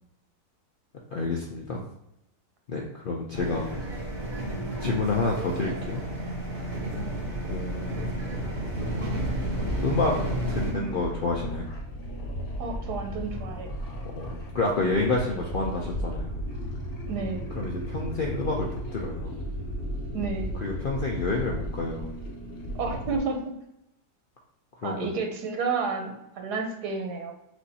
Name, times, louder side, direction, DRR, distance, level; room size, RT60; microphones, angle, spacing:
voice 1, 1.1-1.8 2.7-3.7 4.8-6.0 7.5-8.1 9.8-10.1 10.5-11.7 14.1-16.4 17.6-19.3 20.6-22.1 24.8-25.1, left 3 dB, 80° left, -2 dB, 0.4 m, -29 dB
sound 1, 3.3-10.7, right 1 dB, 55° right, 1.4 m, -32 dB
sound 2, 6.7-23.2, equal, 45° left, 1.0 m, -35 dB
voice 2, 12.6-13.7 17.1-17.4 20.1-20.5 22.7-23.4 24.8-27.3, right 4 dB, 85° right, 3 dB, 1.4 m, -31 dB
6.1 x 2.6 x 2.7 m, 0.86 s
omnidirectional pair, 1.7 m